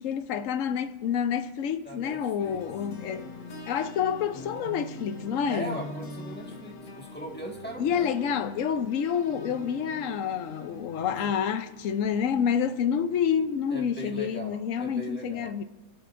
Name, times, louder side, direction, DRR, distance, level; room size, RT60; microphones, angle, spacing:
voice 1, 0.0-3.2 3.7-5.8 7.8-15.6, left 8 dB, 60° left, 0.9 m, -28 dB
voice 2, 1.8-2.6 3.0-3.3 5.5-8.2 11.1-11.3 13.7-15.5, right 1 dB, 5° left, 1.6 m, -40 dB
sound 1, 2.4-13.9, left 1 dB, 90° left, 2.2 m, -44 dB
24.5 x 18.0 x 2.6 m
omnidirectional pair, 1.8 m